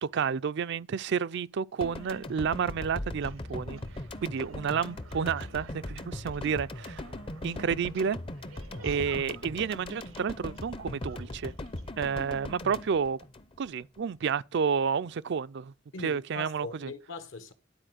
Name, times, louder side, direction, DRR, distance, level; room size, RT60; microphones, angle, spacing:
voice 1, 0.0-3.8 4.2-7.0 7.4-8.2 8.8-11.5 12.0-13.2 13.6-15.7 16.0-16.9, right 6 dB, 60° right, 0.4 m, -30 dB
sound 1, 1.8-14.0, left 1 dB, 25° left, 0.6 m, -40 dB
sound 2, 2.0-11.9, right 4 dB, 85° right, 0.9 m, -54 dB
voice 2, 8.7-9.0 15.9-17.5, left 3 dB, 70° left, 1.2 m, -42 dB
11.5 x 4.2 x 7.6 m
head